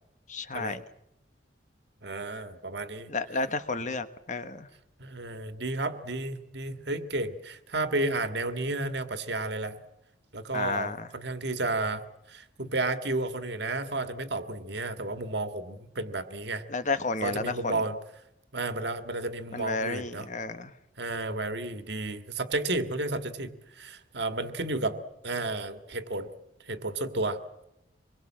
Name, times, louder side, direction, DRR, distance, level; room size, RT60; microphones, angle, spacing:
voice 1, 0.3-0.8 3.1-4.7 10.5-11.1 16.7-17.8 19.5-20.7, left 3 dB, 40° left, 11 dB, 1.2 m, -32 dB
voice 2, 2.0-3.1 5.0-9.8 10.3-12.0 12.3-16.6 17.2-18.0 18.5-20.3 21.0-25.0 25.2-26.3 26.7-27.4, right 2 dB, 60° right, 9 dB, 1.9 m, -32 dB
25.5 x 22.0 x 7.6 m, 0.84 s
head